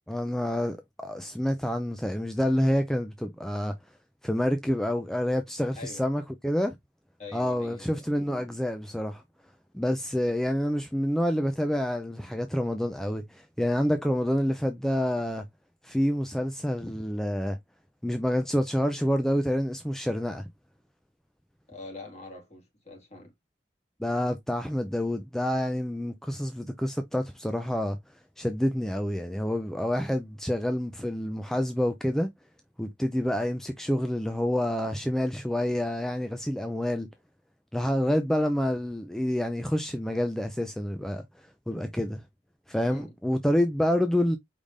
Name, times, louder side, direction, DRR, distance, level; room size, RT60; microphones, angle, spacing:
voice 1, 0.1-0.8 1.0-3.7 4.2-6.8 7.3-9.2 9.7-15.4 15.8-17.6 18.0-20.4 24.0-28.0 28.4-32.3 32.8-37.1 37.7-41.2 41.7-42.2 42.7-44.4, equal, 5° left, 0.4 m, -28 dB
voice 2, 7.2-8.0 21.7-23.3 38.0-38.1 42.8-43.1, left 3 dB, 40° left, 2.0 m, -44 dB
4.9 x 3.5 x 2.6 m
head